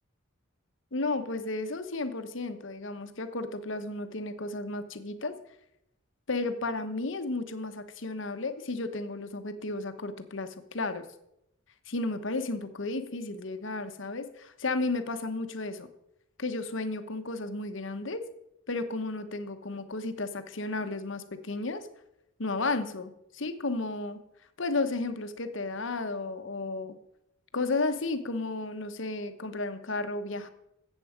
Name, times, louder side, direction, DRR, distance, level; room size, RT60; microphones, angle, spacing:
voice 1, 0.9-5.4 6.3-11.0 11.9-15.9 16.4-18.3 18.7-21.9 22.4-24.2 24.6-27.0 27.5-30.5, left 3 dB, 65° left, 9 dB, 1.1 m, -33 dB
14.0 x 8.4 x 5.0 m, 0.82 s
head